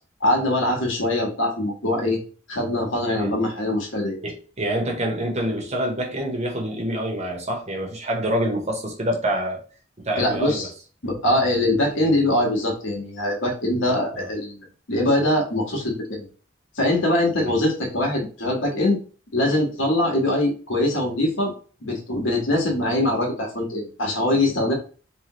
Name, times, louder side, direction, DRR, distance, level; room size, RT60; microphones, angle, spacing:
voice 1, 0.2-2.2 2.5-4.2 10.2-10.7 11.0-16.3 16.8-19.0 19.3-21.5 21.8-24.7, left 1 dB, 90° left, 0 dB, 1.6 m, -22 dB
voice 2, 4.2-9.6 10.0-10.7 14.1-14.3 17.4-17.5, right 1 dB, 35° right, 1 dB, 1.2 m, -26 dB
3.4 x 3.3 x 3.1 m, 0.38 s
head